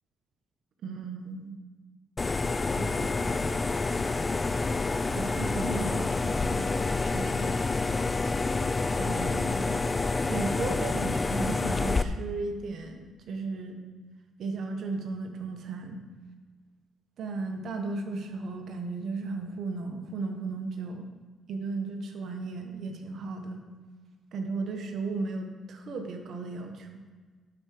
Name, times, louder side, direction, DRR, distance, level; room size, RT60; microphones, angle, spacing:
voice 1, 0.8-1.6 2.8-3.4 5.1-6.6 7.0-7.6 8.9-9.7 10.3-13.0 13.3-13.8 14.4-16.0 17.2-21.1 21.5-23.6 24.3-26.9, right 3 dB, 65° right, 4 dB, 1.3 m, -35 dB
sound 1, 2.2-12.0, left 3 dB, 25° left, 0.4 m, -28 dB
11.5 x 4.9 x 6.0 m, 1.4 s
cardioid pair, 90°, 0 cm